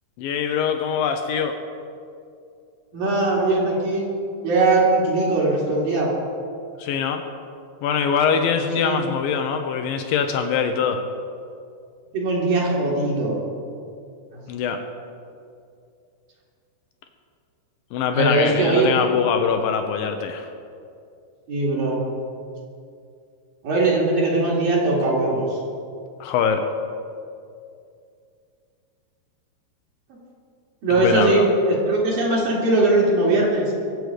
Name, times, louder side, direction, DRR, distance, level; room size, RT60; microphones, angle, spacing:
voice 1, 0.2-1.6 6.8-7.2 7.8-11.0 14.5-14.8 17.9-20.5 26.2-26.6 31.0-31.5, left 7 dB, 80° left, 6 dB, 2.1 m, -23 dB
voice 2, 2.9-4.0 4.4-6.1 8.8-9.0 12.1-13.4 14.3-14.4 18.1-18.9 21.5-22.0 23.6-25.6 30.8-33.7, right 2 dB, 55° right, -5 dB, 3.9 m, -20 dB
24.0 x 8.0 x 5.0 m, 2.4 s
omnidirectional pair, 5.1 m